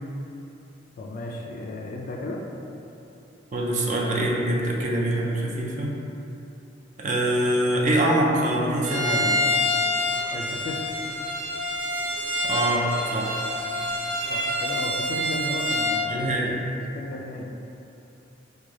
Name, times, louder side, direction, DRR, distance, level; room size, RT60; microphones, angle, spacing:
voice 1, 1.0-2.4 10.3-10.9 14.3-16.6 16.9-17.5, left 2 dB, 45° left, 0 dB, 0.3 m, -34 dB
voice 2, 3.5-6.0 7.0-9.4 12.4-13.3 16.1-16.6, right 1 dB, 40° right, -3 dB, 0.4 m, -24 dB
Bowed string instrument, 8.8-16.1, left 1 dB, 80° right, 0.7 m, -27 dB
3.6 x 2.2 x 3.2 m, 2.8 s
head